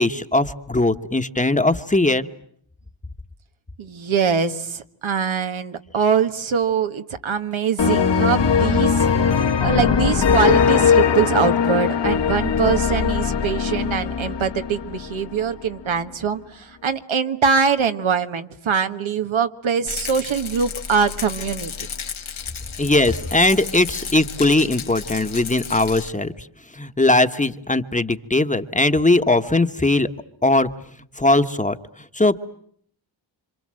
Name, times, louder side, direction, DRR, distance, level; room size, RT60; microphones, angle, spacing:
voice 1, 0.0-2.3 22.8-26.3 26.8-30.1 30.4-30.7 31.2-31.8 32.1-32.5, left 2 dB, 15° left, 9 dB, 1.2 m, -19 dB
voice 2, 3.8-9.1 9.4-21.7, right 6 dB, 90° right, 7 dB, 1.6 m, -23 dB
sound 1, 7.8-15.4, left 6 dB, 65° left, 1.4 m, -20 dB
Rattle, 19.9-26.1, left 6 dB, 90° left, 1.6 m, -33 dB
27.5 x 26.0 x 7.7 m, 0.65 s
wide cardioid pair, 85°, 46 cm